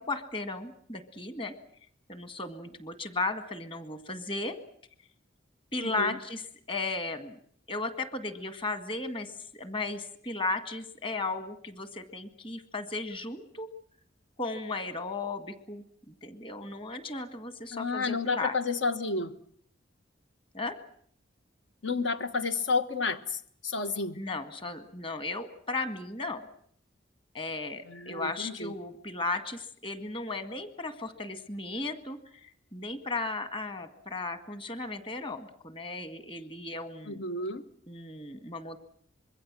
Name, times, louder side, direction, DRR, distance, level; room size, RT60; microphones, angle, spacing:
voice 1, 0.0-1.5 2.1-4.6 5.7-7.4 7.7-13.7 14.4-18.6 20.5-20.8 24.2-26.4 27.3-37.2 37.9-38.8, left 3 dB, 25° left, 1.9 m, -35 dB
voice 2, 5.8-6.2 17.7-19.4 21.8-24.2 27.9-28.7 37.1-37.6, left 4 dB, 75° left, 1.3 m, -31 dB
25.5 x 22.5 x 7.6 m
head